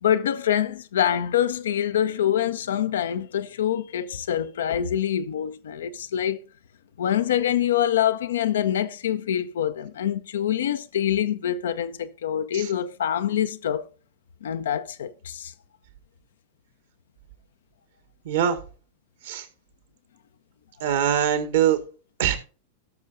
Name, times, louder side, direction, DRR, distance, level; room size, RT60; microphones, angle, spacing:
voice 1, 0.0-6.4 7.0-13.9 14.4-15.5, left 10 dB, 65° left, 0.7 m, -25 dB
voice 2, 18.2-18.6 19.2-19.4 20.8-21.8 22.2-22.4, right 9 dB, 55° right, 1.7 m, -22 dB
17.5 x 6.4 x 2.6 m
figure-of-eight pair, 90°, 0 cm